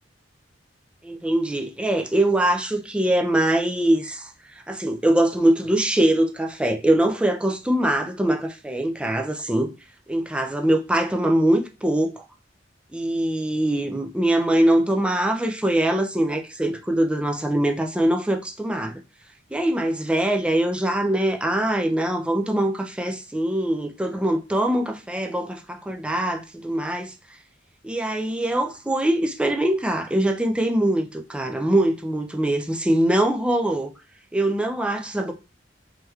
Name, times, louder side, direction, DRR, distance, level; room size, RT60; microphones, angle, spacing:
voice 1, 1.0-9.7 10.1-12.2 12.9-19.0 19.5-27.1 27.8-33.9 34.3-35.3, right 1 dB, 5° right, 0.3 m, -23 dB
3.2 x 2.9 x 2.3 m
head